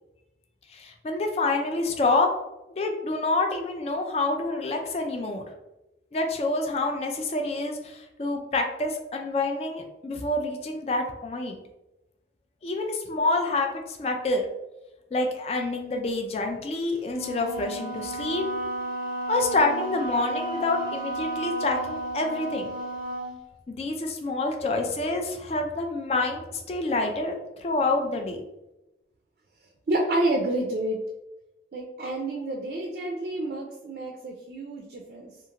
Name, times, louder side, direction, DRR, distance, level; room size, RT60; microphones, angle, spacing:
voice 1, 0.7-2.3 2.7-5.4 6.1-11.6 12.6-14.4 15.1-18.5 19.3-22.7 23.7-28.4, left 2 dB, 35° left, 3 dB, 0.3 m, -27 dB
Wind instrument woodwind instrument, 17.1-23.4, right 1 dB, 5° right, 0.9 m, -33 dB
voice 2, 29.9-31.0 31.7-35.3, right 1 dB, 55° right, 1 dB, 0.4 m, -29 dB
2.5 x 2.4 x 2.8 m, 0.95 s
head